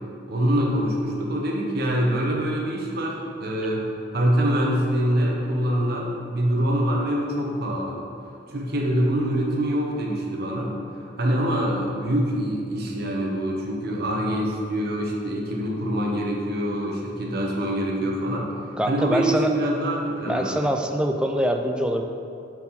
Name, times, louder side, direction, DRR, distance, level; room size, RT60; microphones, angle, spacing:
voice 1, 0.3-8.0 8.5-18.5 18.9-20.6, equal, 50° right, -1 dB, 1.0 m, -25 dB
voice 2, 18.8-19.5 20.2-22.0, equal, 5° right, 4 dB, 0.3 m, -24 dB
6.2 x 4.2 x 5.6 m, 2.7 s
head